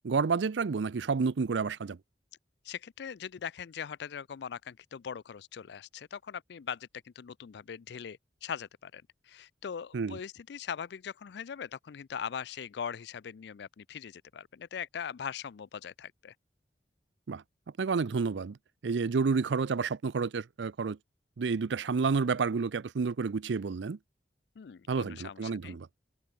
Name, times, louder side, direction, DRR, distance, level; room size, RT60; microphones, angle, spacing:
voice 1, 0.0-2.0 9.9-10.2 17.3-17.4 17.8-18.6 18.8-21.0 21.4-24.0 24.9-25.9, right 5 dB, 80° right, 0.5 m, -30 dB
voice 2, 2.6-9.0 9.3-16.3 24.6-25.8, left 7 dB, 70° left, 0.4 m, -41 dB
head